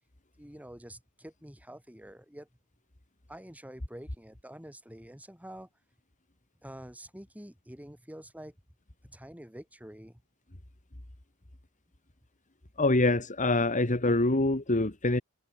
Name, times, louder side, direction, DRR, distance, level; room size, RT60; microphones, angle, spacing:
voice 1, 0.4-2.5 3.3-5.7 6.6-8.5 9.0-10.2, right 1 dB, 5° right, 5.7 m, -47 dB
voice 2, 12.8-15.2, left 2 dB, 35° left, 2.1 m, -25 dB
head